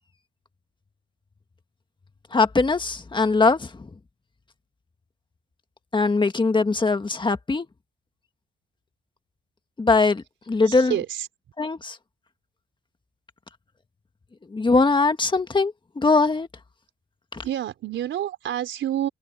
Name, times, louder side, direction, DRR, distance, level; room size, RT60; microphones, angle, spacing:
voice 1, 2.3-3.9 5.9-7.7 9.8-10.9 11.6-12.0 14.5-16.5 17.3-17.4, left 3 dB, 25° left, 1.8 m, -21 dB
voice 2, 10.6-11.3 17.3-19.1, right 11 dB, 70° right, 4.0 m, -28 dB
cardioid pair, 90°, 20 cm